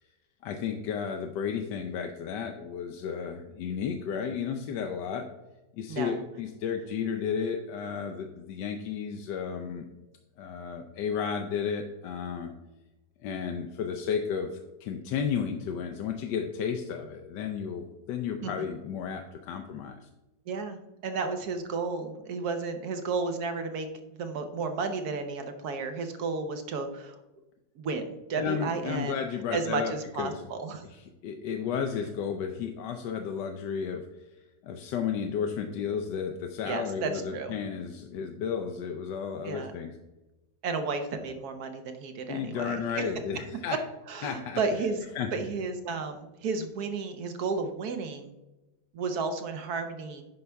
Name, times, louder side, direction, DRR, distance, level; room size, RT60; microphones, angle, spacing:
voice 1, 0.4-5.3 5.8-9.9 10.4-12.5 13.2-20.1 28.4-30.5 30.9-39.9 42.3-43.8 44.2-44.6 45.1-45.3, left 7 dB, 75° left, 4 dB, 1.2 m, -33 dB
voice 2, 5.9-6.2 18.4-18.5 20.5-27.2 27.8-29.2 29.5-30.8 36.7-37.5 39.4-39.7 40.6-43.0 44.1-45.0 45.3-48.3 48.9-50.2, right 4 dB, 60° right, 7 dB, 1.2 m, -33 dB
9.5 x 5.7 x 3.4 m, 1.0 s
omnidirectional pair, 2.0 m